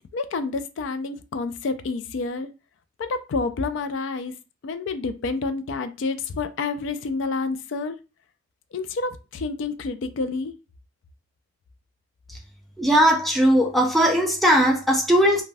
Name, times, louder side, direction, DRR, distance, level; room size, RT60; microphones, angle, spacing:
voice 1, 0.1-2.5 3.0-4.3 4.6-8.0 8.7-10.5, left 3 dB, 65° left, 0.3 m, -28 dB
voice 2, 12.8-15.4, equal, ahead, 0.4 m, -18 dB
2.5 x 2.1 x 3.2 m
head